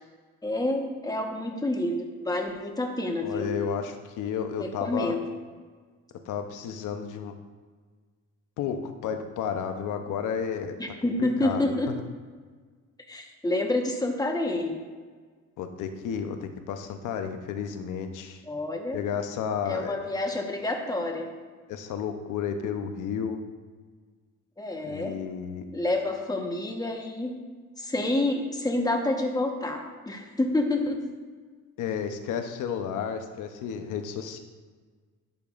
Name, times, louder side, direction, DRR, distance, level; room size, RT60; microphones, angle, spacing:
voice 1, 0.4-3.5 4.6-5.2 10.8-11.9 13.1-14.8 18.5-19.0 19.7-21.3 24.6-25.2 25.7-27.4 27.8-31.0, left 2 dB, 10° left, 2 dB, 1.2 m, -28 dB
voice 2, 3.2-5.2 6.3-7.3 8.6-10.8 11.2-11.8 15.6-18.4 18.9-20.0 21.7-23.4 24.9-25.6 31.8-34.4, left 7 dB, 85° left, 7 dB, 0.8 m, -32 dB
10.5 x 6.9 x 2.5 m, 1.5 s
cardioid pair, 90°, 30 cm